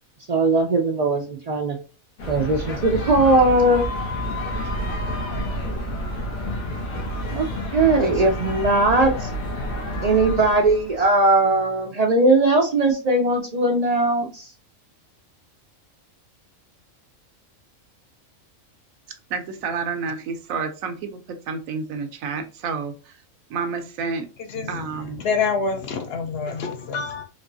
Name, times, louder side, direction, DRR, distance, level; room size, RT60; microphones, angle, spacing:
voice 1, 0.3-1.8 2.3-3.8 7.3-7.5 7.7-9.3 10.0-14.5, right 2 dB, 60° right, 2 dB, 0.4 m, -19 dB
sound 1, 2.2-11.1, equal, 90° left, 1.5 m, -29 dB
voice 2, 19.3-23.1 23.5-24.3 24.7-25.2, right 5 dB, 85° right, 7 dB, 1.1 m, -29 dB
voice 3, 25.2-27.2, left 5 dB, 60° left, 6 dB, 0.7 m, -26 dB
4.2 x 2.9 x 2.6 m, 0.34 s
omnidirectional pair, 1.4 m